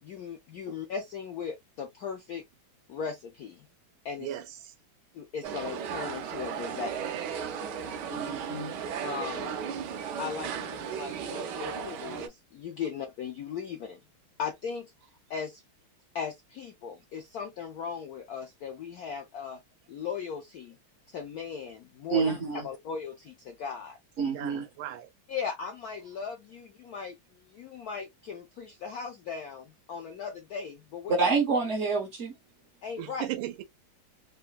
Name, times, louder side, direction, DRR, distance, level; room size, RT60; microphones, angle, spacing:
voice 1, 0.0-2.4 2.9-3.7 4.0-4.3 5.1-6.9 9.0-9.6 10.2-14.0 14.4-14.9 15.3-15.6 16.1-19.6 19.9-20.8 21.1-24.0 25.3-31.1 32.8-33.3, left 6 dB, 75° left, 0.8 m, -38 dB
voice 2, 4.2-4.7 8.2-8.4 24.2-25.1 33.0-33.6, right 13 dB, 85° right, 1.5 m, -37 dB
sound 1, 5.4-12.3, right 7 dB, 70° right, 1.1 m, -35 dB
voice 3, 8.1-8.8 22.1-22.7 24.2-24.7 31.1-32.3, right 4 dB, 55° right, 0.8 m, -28 dB
3.6 x 2.1 x 2.3 m
omnidirectional pair, 2.2 m